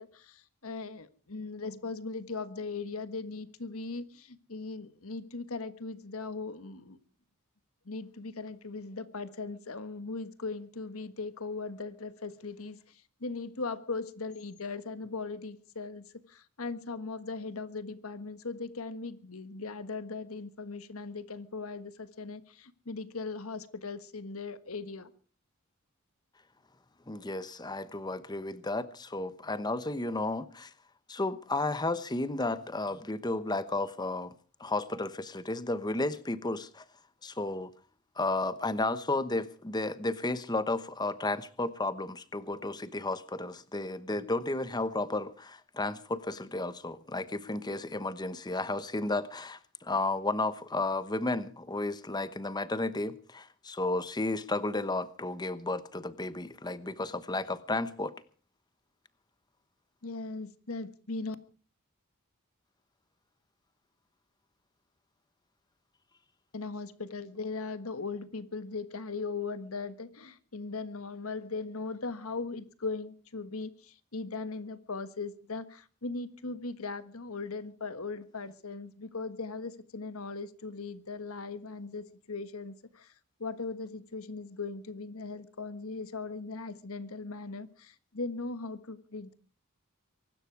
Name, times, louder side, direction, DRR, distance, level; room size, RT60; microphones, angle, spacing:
voice 1, 0.0-7.0 7.8-25.1 60.0-61.4 66.5-83.1 83.4-89.3, left 3 dB, 75° left, 12 dB, 1.5 m, -39 dB
voice 2, 27.1-30.7 31.1-34.3 34.6-36.8 37.2-37.7 38.2-58.1, left 2 dB, 20° left, 14 dB, 1.0 m, -33 dB
23.5 x 12.0 x 4.7 m, 0.40 s
head